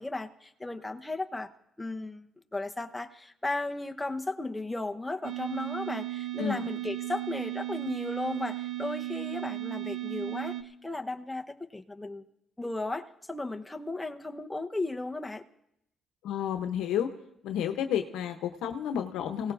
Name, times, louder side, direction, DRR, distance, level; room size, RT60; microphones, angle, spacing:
voice 1, 0.0-1.5 1.8-12.2 12.6-15.4, left 2 dB, 10° left, 4 dB, 1.0 m, -35 dB
sound 1, 5.2-10.6, right 16 dB, 65° right, 1.0 m, -35 dB
voice 2, 16.2-17.1 17.4-19.5, left 9 dB, 90° left, 6 dB, 0.8 m, -31 dB
29.0 x 17.5 x 2.6 m, 0.79 s
cardioid pair, 90°, 0 cm